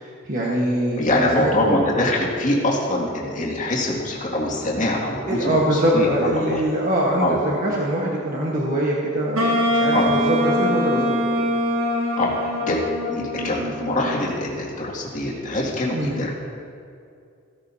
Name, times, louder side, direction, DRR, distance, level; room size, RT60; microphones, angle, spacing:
voice 1, 0.0-1.8 5.3-11.1 15.9-16.3, right 1 dB, 40° right, -4 dB, 1.3 m, -23 dB
voice 2, 1.0-6.6 7.2-7.3 9.9-10.1 12.2-16.3, left 1 dB, 35° left, -4 dB, 2.2 m, -24 dB
Wind instrument woodwind instrument, 9.4-14.4, equal, 85° right, 1.4 m, -23 dB
16.0 x 11.5 x 2.8 m, 2.4 s
head